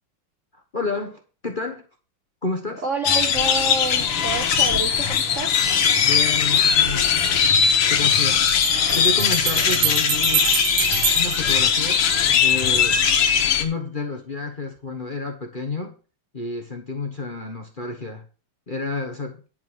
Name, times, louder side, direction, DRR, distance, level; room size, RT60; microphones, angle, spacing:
voice 1, 0.5-1.9 2.4-2.8 6.0-7.1 7.9-8.4 8.9-10.5 11.1-12.0 12.3-13.0 13.6-15.9 16.3-18.2 18.7-19.4, left 3 dB, 30° left, 3 dB, 1.1 m, -30 dB
voice 2, 2.8-5.6, right 3 dB, 45° right, 4 dB, 1.0 m, -28 dB
sound 1, 3.0-13.6, left 7 dB, 90° left, 2.1 m, -20 dB
Bell, 6.8-6.9 8.5-12.4, right 13 dB, 85° right, 1.7 m, -27 dB
11.0 x 5.4 x 6.2 m, 0.37 s
omnidirectional pair, 2.4 m